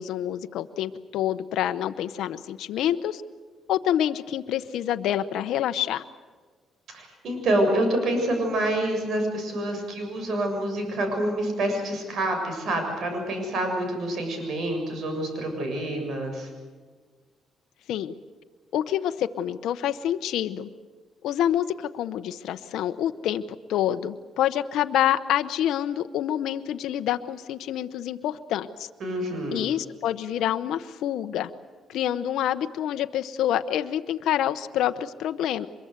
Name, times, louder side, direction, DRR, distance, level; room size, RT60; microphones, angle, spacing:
voice 1, 0.0-3.2 3.7-6.0 17.9-18.1 18.7-20.7 21.2-23.4 23.7-28.9 29.5-31.5 31.9-35.7, left 11 dB, 80° left, 9 dB, 0.9 m, -27 dB
voice 2, 6.9-16.5 29.0-29.6, right 1 dB, 65° right, 4 dB, 7.1 m, -27 dB
24.5 x 22.5 x 8.0 m, 1.4 s
cardioid pair, 90°, 0 cm